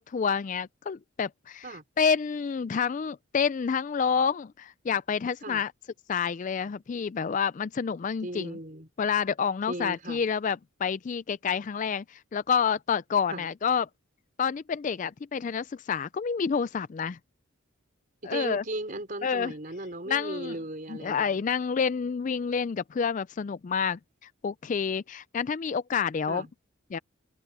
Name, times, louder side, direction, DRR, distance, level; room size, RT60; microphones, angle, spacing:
voice 1, 0.0-5.7 6.1-8.6 9.0-13.9 14.4-17.2 18.2-18.6 19.2-19.5 20.1-20.6 20.9-24.0 24.4-26.5 26.9-27.0, left 6 dB, 35° left, 0.3 m, -28 dB
voice 2, 8.2-8.9 9.7-10.2 13.3-13.5 18.2-21.4 26.3-26.5, right 1 dB, 40° right, 5.3 m, -36 dB
head